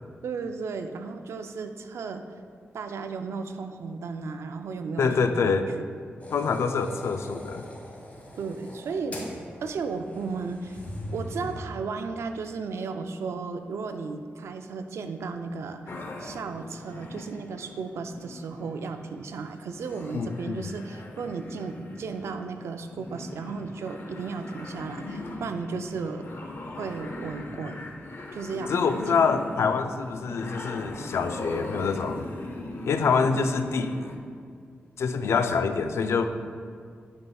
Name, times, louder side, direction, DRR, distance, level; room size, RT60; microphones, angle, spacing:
voice 1, 0.2-2.2 2.7-5.6 8.4-9.2 9.6-10.8 11.1-15.9 16.2-26.2 26.7-27.9 28.3-28.9, right 4 dB, 85° right, 7 dB, 0.4 m, -34 dB
voice 2, 5.0-5.7 6.3-7.7 20.1-20.7 28.7-32.3 32.8-34.0 35.0-36.3, left 5 dB, 80° left, 8 dB, 0.4 m, -25 dB
sound 1, 6.2-11.6, left 1 dB, 35° left, 1.6 m, -41 dB
sound 2, 15.9-34.2, left 2 dB, 55° left, 0.8 m, -40 dB
11.0 x 5.4 x 2.3 m, 2.2 s
cardioid pair, 75°, 5 cm